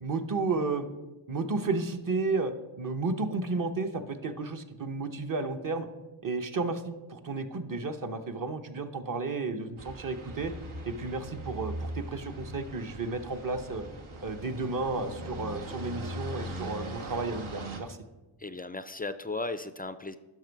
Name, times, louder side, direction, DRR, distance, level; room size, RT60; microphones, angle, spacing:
voice 1, 0.0-0.9 1.3-2.5 2.8-5.9 6.2-10.5 10.9-13.9 14.2-18.0, right 3 dB, 40° right, 7 dB, 0.9 m, -32 dB
sound 1, 9.8-17.8, right 1 dB, 75° right, 1.3 m, -40 dB
voice 2, 18.4-20.2, left 2 dB, 20° left, 12 dB, 0.3 m, -36 dB
10.5 x 6.0 x 4.6 m, 1.1 s
cardioid pair, 60°, 48 cm